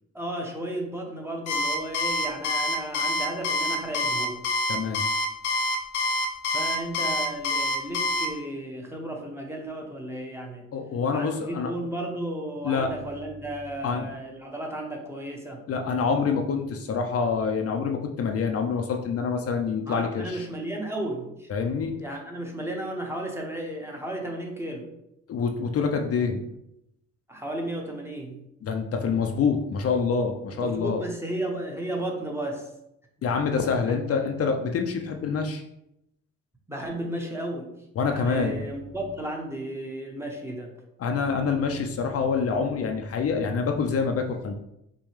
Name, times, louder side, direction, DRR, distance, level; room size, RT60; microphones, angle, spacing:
voice 1, 0.1-4.4 6.5-10.6 11.1-15.6 19.8-21.5 22.0-24.8 27.3-28.4 30.5-32.7 33.9-34.0 36.7-37.7 38.1-40.7, right 1 dB, 10° right, 0 dB, 0.8 m, -34 dB
Alarm, 1.5-8.3, left 2 dB, 85° left, 0.7 m, -26 dB
voice 2, 4.7-5.0 10.7-11.7 12.6-12.9 13.8-14.1 15.7-20.5 21.5-21.9 25.3-26.4 28.6-31.0 33.2-35.6 38.0-38.6 41.0-44.5, left 5 dB, 50° left, 3 dB, 0.5 m, -26 dB
5.3 x 2.2 x 3.2 m, 0.82 s
cardioid pair, 90°, 30 cm